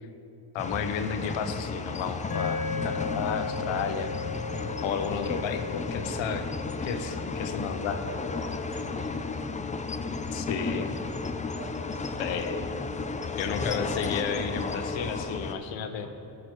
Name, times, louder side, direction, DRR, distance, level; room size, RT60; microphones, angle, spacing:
voice 1, 0.5-4.1 4.8-6.5 6.8-8.0 10.3-10.9 12.2-12.7 13.4-16.1, left 6 dB, 85° left, 7 dB, 0.9 m, -32 dB
sound 1, 0.6-15.5, left 4 dB, 15° left, 0.5 m, -33 dB
sound 2, 2.3-10.7, left 4 dB, 50° left, 1.1 m, -38 dB
voice 2, 6.8-9.4 9.9-11.0 11.5-12.5 16.0-16.1, right 2 dB, 40° right, -2 dB, 2.4 m, -46 dB
14.0 x 6.4 x 4.5 m, 2.9 s
cardioid pair, 100°, 45 cm